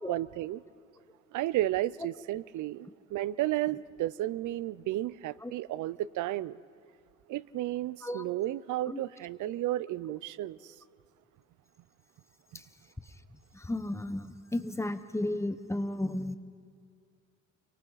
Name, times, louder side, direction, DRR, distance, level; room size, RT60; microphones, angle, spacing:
voice 1, 0.1-0.6 1.3-6.6 7.3-10.6, right 15 dB, 80° right, 19 dB, 0.6 m, -33 dB
voice 2, 13.5-16.4, left 1 dB, 10° left, 10 dB, 1.0 m, -33 dB
29.5 x 24.0 x 4.1 m, 2.3 s
cardioid pair, 90°, 30 cm